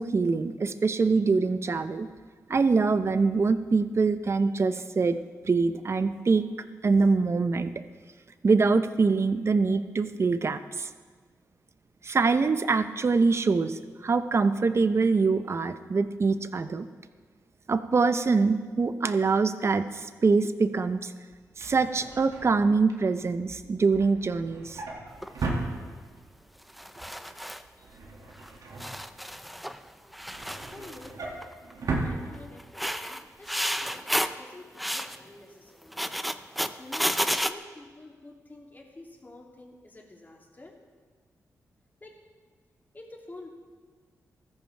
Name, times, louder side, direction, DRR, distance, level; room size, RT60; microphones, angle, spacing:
voice 1, 0.0-2.1 2.5-5.2 5.4-6.5 6.8-7.7 8.4-10.9 12.0-16.9 17.7-21.1 21.6-24.8, right 4 dB, 45° right, 11 dB, 0.8 m, -24 dB
Drawer open or close, 21.3-26.4 26.7-27.1 27.3-29.5 29.9-32.9 33.3-33.5 33.7-33.8, right 3 dB, 75° right, 2.2 m, -37 dB
sound 1, 25.2-25.4 26.7-27.6 28.4-28.5 28.8-29.8 30.1-31.1 31.4-31.7 32.6-34.4 34.8-35.2 35.8-37.5, equal, ahead, 0.6 m, -31 dB
voice 2, 30.7-31.5 32.0-36.3 36.8-40.8 42.0-42.2 42.9-43.5, left 2 dB, 30° left, -1 dB, 2.8 m, -48 dB
15.0 x 14.0 x 3.4 m, 1.5 s
cardioid pair, 55°, 6 cm